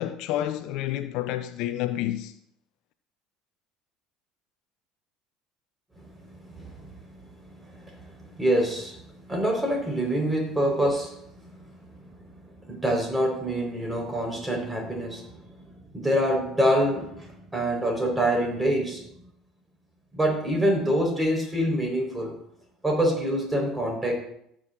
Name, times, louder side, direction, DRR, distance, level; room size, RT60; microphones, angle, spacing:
voice 1, 0.0-2.3, left 13 dB, 60° left, 0.5 m, -29 dB
voice 2, 6.5-6.9 7.7-9.0 9.3-11.2 12.7-15.3 15.9-19.0 20.1-22.3 22.8-24.2, equal, 15° right, 4.5 m, -25 dB
17.5 x 7.4 x 2.6 m
hypercardioid pair, 65°, 0 cm